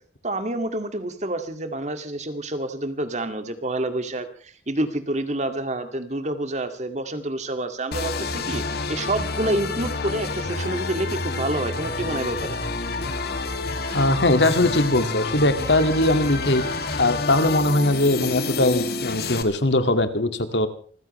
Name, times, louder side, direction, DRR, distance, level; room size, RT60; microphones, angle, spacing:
voice 1, 0.2-12.6, right 1 dB, 40° right, 8 dB, 2.2 m, -28 dB
sound 1, 7.9-19.4, left 3 dB, 60° left, 2.3 m, -28 dB
voice 2, 13.9-16.6 17.0-20.7, left 1 dB, 80° left, 9 dB, 2.1 m, -20 dB
28.0 x 15.5 x 3.2 m, 0.44 s
head